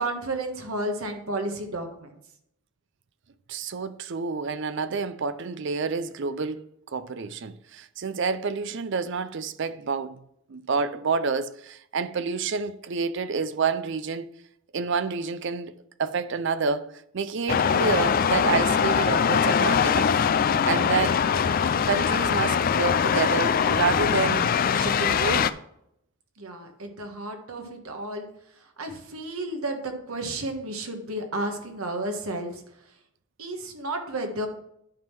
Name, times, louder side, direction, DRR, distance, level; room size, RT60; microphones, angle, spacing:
voice 1, 0.0-2.2 26.4-28.3 28.8-32.6 33.4-34.5, right 1 dB, 80° right, 1.4 m, -32 dB
voice 2, 3.5-6.6 6.9-10.2 10.5-14.3 14.7-15.7 16.0-20.1 20.6-21.3 21.8-24.5 24.7-25.6, right 5 dB, 55° right, 0.5 m, -28 dB
sound 1, 17.5-25.5, left 7 dB, 40° left, 0.3 m, -22 dB
10.5 x 3.7 x 5.9 m
head